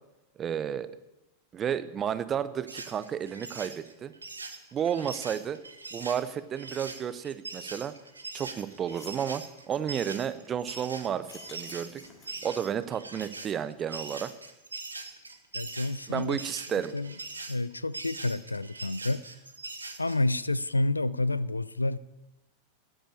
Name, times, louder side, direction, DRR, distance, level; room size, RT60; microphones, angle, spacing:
voice 1, 0.4-0.9 1.5-4.1 4.7-5.6 5.9-7.9 8.3-12.0 12.4-14.3 16.1-16.9, right 8 dB, 25° right, 0.7 m, -32 dB
sound 1, 2.7-20.2, right 3 dB, 80° right, 1.2 m, -42 dB
sound 2, 8.3-8.4 8.7-9.3 11.2-12.5, left 5 dB, 35° left, 2.5 m, -51 dB
voice 2, 15.5-16.4 16.7-17.1 17.5-19.2 20.0-22.0, left 2 dB, 80° left, 0.3 m, -29 dB
9.9 x 9.0 x 8.6 m
figure-of-eight pair, 90°, 0 cm